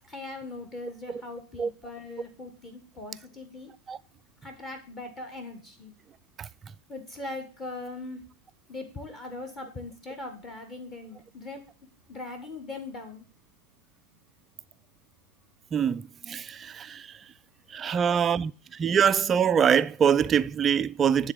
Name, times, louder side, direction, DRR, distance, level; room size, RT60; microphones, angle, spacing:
voice 1, 0.0-3.7 4.4-6.0 6.9-8.2 8.7-11.6 12.1-13.2, left 2 dB, 20° left, 1.5 m, -40 dB
voice 2, 15.7-17.0 17.7-18.5 18.8-21.3, right 7 dB, 25° right, 0.3 m, -24 dB
10.5 x 3.8 x 6.4 m
figure-of-eight pair, 90°, 0 cm